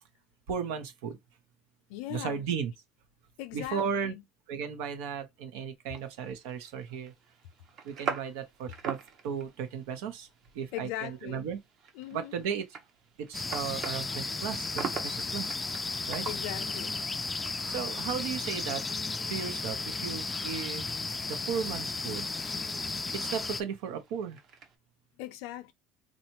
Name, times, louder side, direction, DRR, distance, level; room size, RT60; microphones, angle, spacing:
voice 1, 0.5-1.2 2.1-2.7 3.5-4.1 4.5-7.1 7.8-10.3 10.5-11.6 12.1-12.6 13.2-15.6 16.1-16.3 17.7-18.8 19.3-20.8 21.2-22.3 23.1-24.4, right 7 dB, 90° right, 0.9 m, -35 dB
voice 2, 1.9-2.4 3.4-4.2 10.7-11.5 11.9-12.4 16.3-17.0 25.2-25.7, left 14 dB, 80° left, 0.5 m, -39 dB
sound 1, 5.9-24.8, right 6 dB, 45° right, 0.9 m, -45 dB
sound 2, 13.3-23.6, left 3 dB, 15° left, 0.3 m, -34 dB
4.2 x 2.3 x 2.9 m
cardioid pair, 145°, 0 cm